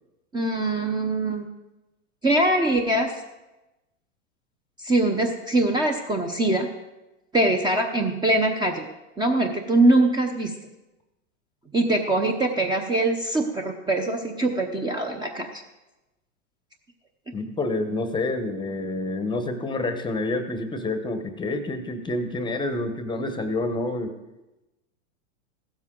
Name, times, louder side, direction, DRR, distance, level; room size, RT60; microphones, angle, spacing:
voice 1, 0.3-1.5 2.2-3.1 4.8-6.7 7.3-8.9 9.2-10.5 11.7-15.6, right 2 dB, 10° right, 3 dB, 0.8 m, -23 dB
voice 2, 17.3-24.1, left 2 dB, 10° left, 8 dB, 0.9 m, -28 dB
15.5 x 12.5 x 3.8 m, 1.0 s
hypercardioid pair, 135°, 39 cm